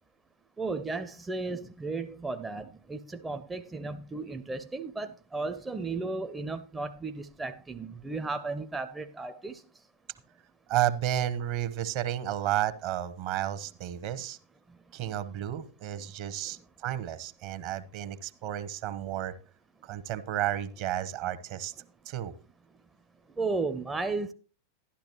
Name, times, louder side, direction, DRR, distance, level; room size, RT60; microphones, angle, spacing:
voice 1, 0.6-9.6 23.4-24.3, right 3 dB, 10° right, 0.5 m, -34 dB
voice 2, 10.7-14.4 14.9-19.3 19.8-21.7 22.1-22.3, right 12 dB, 45° right, 0.8 m, -32 dB
12.0 x 11.5 x 2.9 m
figure-of-eight pair, 90°, 0 cm